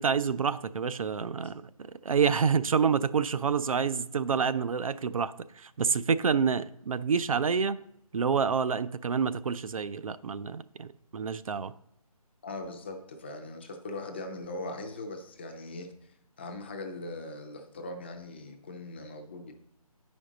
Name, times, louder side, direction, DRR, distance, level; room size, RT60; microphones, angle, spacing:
voice 1, 0.0-1.6 2.0-7.8 8.1-11.7, right 6 dB, 65° right, 0.4 m, -28 dB
voice 2, 12.4-16.1 16.4-19.5, left 2 dB, 20° left, 0.5 m, -40 dB
8.5 x 5.2 x 3.9 m
figure-of-eight pair, 155°, 19 cm